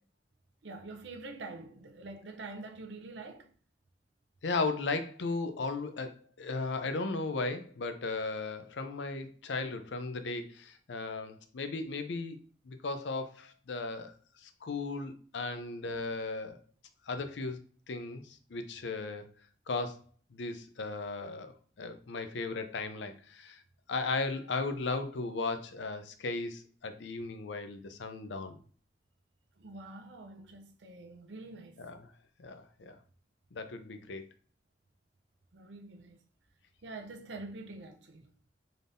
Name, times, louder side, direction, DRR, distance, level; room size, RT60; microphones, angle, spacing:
voice 1, 0.6-3.5 29.6-31.8 35.5-36.2 36.8-38.3, right 3 dB, 85° right, 0.6 m, -46 dB
voice 2, 4.4-12.4 12.6-16.6 17.1-17.6 17.9-19.2 19.7-20.0 20.3-23.6 23.9-28.6 31.8-32.0 32.4-33.0 33.5-34.2, left 3 dB, 90° left, 0.5 m, -36 dB
4.0 x 3.4 x 2.6 m
head